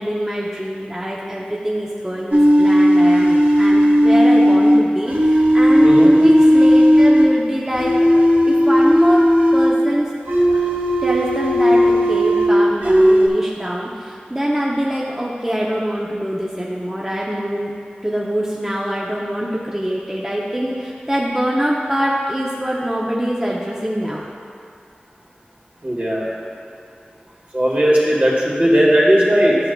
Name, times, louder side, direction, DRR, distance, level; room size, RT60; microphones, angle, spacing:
voice 1, 0.0-8.1 8.5-9.3 9.5-10.1 10.4-10.6 11.0-17.7 18.0-24.2, equal, 10° right, -4 dB, 0.6 m, -24 dB
sound 1, 2.3-7.3 7.7-9.8 10.3-12.6 12.8-13.3, equal, 60° right, 0.9 m, -14 dB
voice 2, 5.8-6.1 25.8-26.4 27.5-29.6, equal, 45° right, -5 dB, 1.8 m, -16 dB
11.5 x 6.5 x 2.2 m, 2.4 s
wide cardioid pair, 60°, 3 cm